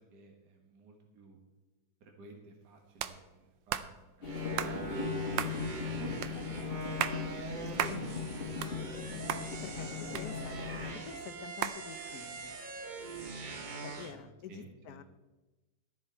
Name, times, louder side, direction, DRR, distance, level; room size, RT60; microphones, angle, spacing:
voice 1, 0.0-1.4 2.0-5.1 5.7-7.9 8.4-8.5 9.8-10.2 14.0-15.0, right 4 dB, 65° right, 2 dB, 1.9 m, -53 dB
sound 1, 3.0-3.2 3.7-3.9 4.6-4.8 5.4-5.6 6.2-6.3 6.8-7.2 7.8-8.0 8.4-9.0 9.3-9.4 10.2-10.7 11.6-11.8, right 11 dB, 85° right, 1.4 m, -34 dB
sound 2, 4.2-10.9, left 6 dB, 40° left, 1.1 m, -38 dB
sound 3, 4.2-14.1, right 4 dB, 40° right, 0.7 m, -42 dB
voice 2, 7.8-8.1 9.6-10.6 11.0-12.6 13.8-15.0, left 8 dB, 65° left, 10 dB, 1.1 m, -47 dB
13.0 x 10.5 x 4.4 m, 1.1 s
omnidirectional pair, 2.0 m